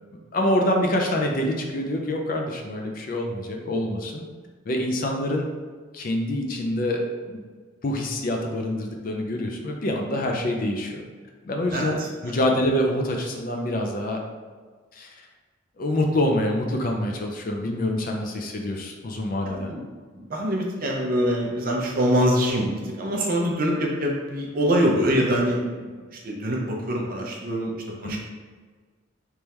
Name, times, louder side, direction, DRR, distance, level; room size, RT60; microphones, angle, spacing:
voice 1, 0.1-4.2 4.7-5.5 5.9-7.4 7.8-11.0 11.4-14.2 14.9-15.2 15.8-19.7 28.0-28.2, left 1 dB, 45° left, 2 dB, 0.5 m, -26 dB
voice 2, 11.7-12.3 19.4-19.8 20.2-28.2, equal, 45° right, -1 dB, 0.7 m, -24 dB
3.5 x 3.3 x 2.9 m, 1.5 s
head